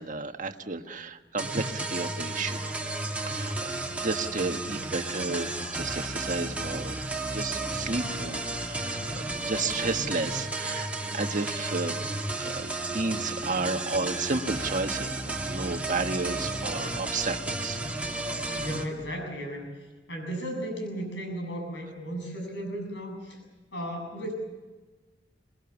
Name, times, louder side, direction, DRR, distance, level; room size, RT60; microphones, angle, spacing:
voice 1, 0.0-2.6 3.2-7.0 7.3-10.9 11.1-12.0 12.4-17.8, right 3 dB, 45° right, 6 dB, 1.4 m, -32 dB
sound 1, 1.4-18.8, right 2 dB, 10° right, 2.2 m, -33 dB
voice 2, 18.6-19.7 20.1-23.4 23.7-24.3, right 1 dB, 70° left, 2 dB, 7.5 m, -35 dB
26.0 x 20.5 x 7.2 m, 1.2 s
head